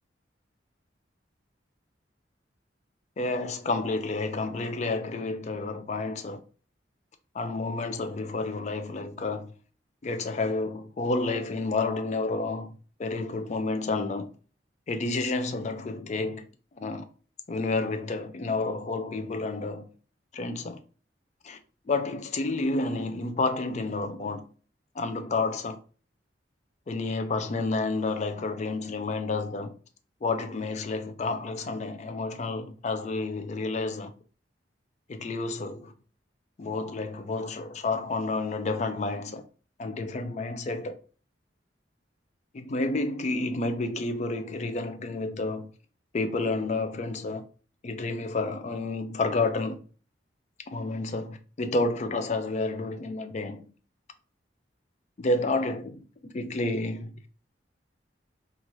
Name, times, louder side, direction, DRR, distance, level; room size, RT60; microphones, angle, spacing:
voice 1, 3.2-6.4 7.3-9.5 10.0-14.3 14.9-16.4 16.8-17.0 17.5-19.9 20.3-20.8 21.4-21.6 21.9-24.4 25.0-25.8 26.9-29.7 30.2-34.2 35.1-35.9 36.6-39.4 39.8-40.9 42.5-45.7 46.1-47.4 47.8-49.8 50.7-53.6 55.2-57.3, left 3 dB, 40° left, 0.4 m, -30 dB
2.6 x 2.4 x 3.0 m
head